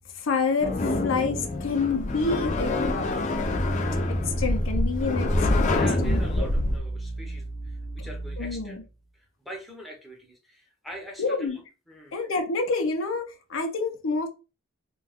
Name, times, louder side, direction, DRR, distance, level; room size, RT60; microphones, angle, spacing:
voice 1, 0.2-3.3 4.1-6.5 8.4-8.8 11.2-11.6 12.1-14.3, left 4 dB, 80° left, 0.6 m, -28 dB
sound 1, 0.6-6.8, left 2 dB, 40° left, 0.4 m, -26 dB
sound 2, 3.5-8.9, right 1 dB, 35° right, 0.4 m, -33 dB
voice 2, 5.7-8.8 9.1-11.6 11.9-12.2, equal, ahead, 0.7 m, -42 dB
2.3 x 2.2 x 3.4 m
head